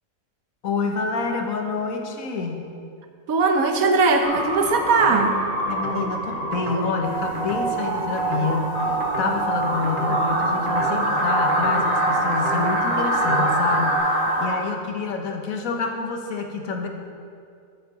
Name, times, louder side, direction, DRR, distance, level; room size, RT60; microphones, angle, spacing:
voice 1, 0.6-2.6 5.7-16.9, left 4 dB, 75° left, 3 dB, 1.4 m, -27 dB
voice 2, 3.3-5.5, right 3 dB, 80° right, 5 dB, 1.4 m, -19 dB
sound 1, 4.2-10.7, equal, 60° left, 3.0 m, -32 dB
sound 2, 4.3-14.0, right 3 dB, 45° right, 0.9 m, -33 dB
sound 3, 7.0-14.5, right 1 dB, 20° right, 3.1 m, -23 dB
13.5 x 7.7 x 4.0 m, 2.4 s
omnidirectional pair, 1.5 m